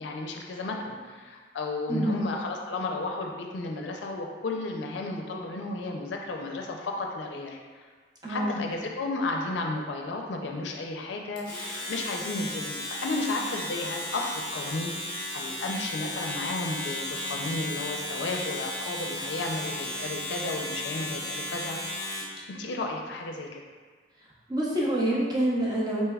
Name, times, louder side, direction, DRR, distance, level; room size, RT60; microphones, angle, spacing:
voice 1, 0.0-7.9 8.3-21.8 22.5-23.6, left 2 dB, 80° left, 1 dB, 0.4 m, -33 dB
voice 2, 1.9-2.2 8.2-8.6 24.5-26.0, right 1 dB, 20° right, -6 dB, 0.7 m, -26 dB
Domestic sounds home sounds, 11.4-22.4, left 1 dB, 25° left, 0.7 m, -35 dB
4.3 x 3.3 x 2.3 m, 1.5 s
head